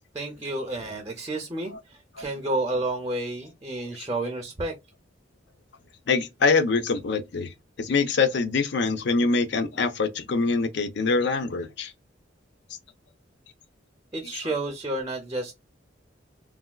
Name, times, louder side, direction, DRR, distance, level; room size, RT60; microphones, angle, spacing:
voice 1, 0.1-4.7 14.1-15.5, right 2 dB, 20° right, 0.5 m, -30 dB
voice 2, 6.1-7.5 7.8-11.9, left 4 dB, 60° left, 0.5 m, -24 dB
3.3 x 2.2 x 2.2 m
head